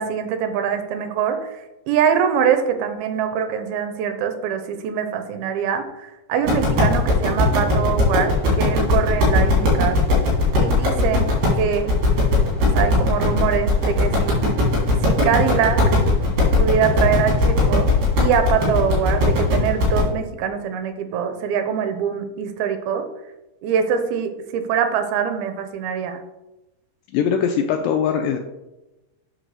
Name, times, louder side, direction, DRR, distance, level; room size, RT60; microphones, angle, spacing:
voice 1, 0.0-1.6 1.9-10.0 10.6-11.9 12.6-14.4 15.0-15.8 16.6-17.9 18.2-23.1 23.6-26.2, right 7 dB, 85° right, 8 dB, 2.6 m, -23 dB
sound 1, 6.4-20.0, left 1 dB, 70° right, 4.4 m, -19 dB
voice 2, 27.1-28.4, left 7 dB, 85° left, 4 dB, 2.0 m, -21 dB
8.1 x 3.9 x 6.4 m, 1.0 s
omnidirectional pair, 4.4 m